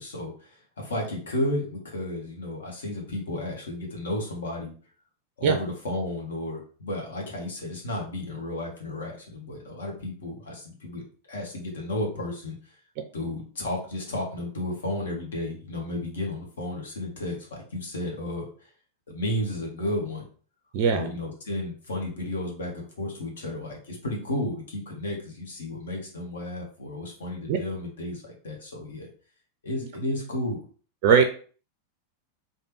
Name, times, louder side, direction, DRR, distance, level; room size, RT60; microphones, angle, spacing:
voice 1, 0.0-4.7 5.4-11.0 11.3-12.6 13.1-18.7 19.1-20.3 20.9-29.1 29.6-30.6, left 1 dB, 65° left, 0 dB, 1.1 m, -33 dB
voice 2, 20.7-21.1 27.5-27.6 31.0-31.2, right 6 dB, 45° right, 6 dB, 0.4 m, -19 dB
3.2 x 2.3 x 3.0 m, 0.42 s
figure-of-eight pair, 90°, 0 cm